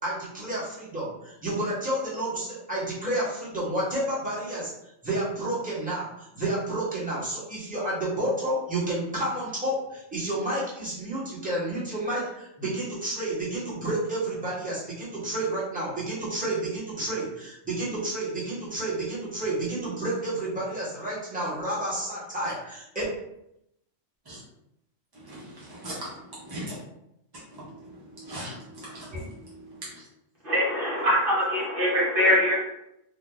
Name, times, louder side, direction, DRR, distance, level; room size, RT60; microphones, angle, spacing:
voice 1, 0.0-4.7 5.0-23.0, right 1 dB, 5° right, -8 dB, 1.2 m, -30 dB
voice 2, 25.2-26.1 26.4-26.8 27.5-29.1 29.4-29.6, right 1 dB, 25° right, -7 dB, 0.6 m, -39 dB
voice 3, 30.4-32.6, equal, 45° right, -6 dB, 1.2 m, -23 dB
3.0 x 2.3 x 3.8 m, 0.81 s
omnidirectional pair, 1.3 m